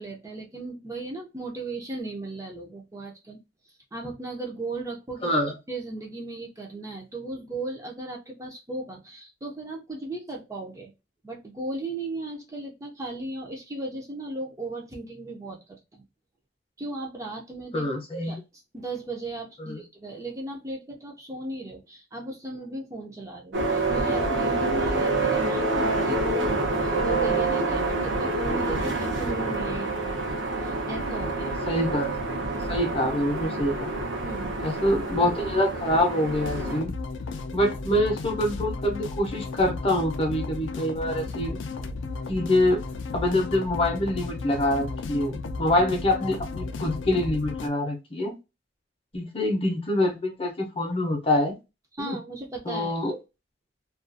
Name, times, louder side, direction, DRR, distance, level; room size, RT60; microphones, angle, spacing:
voice 1, 0.0-5.3 5.7-10.9 11.2-16.0 16.8-17.9 18.2-18.4 18.7-31.6 34.2-34.7 51.9-53.0, right 2 dB, 15° right, 0 dB, 0.4 m, -36 dB
voice 2, 5.2-5.5 17.7-18.4 19.6-19.8 31.7-32.4 32.7-33.9 34.6-36.9 37.5-41.6 42.3-42.8 43.1-48.3 49.1-51.5 52.0-52.2 52.6-53.2, left 1 dB, 30° left, 3 dB, 0.6 m, -25 dB
sound 1, 23.5-36.8, right 2 dB, 80° right, 0.7 m, -27 dB
sound 2, 36.4-47.7, left 3 dB, 85° left, 0.4 m, -34 dB
2.3 x 2.3 x 2.5 m, 0.26 s
head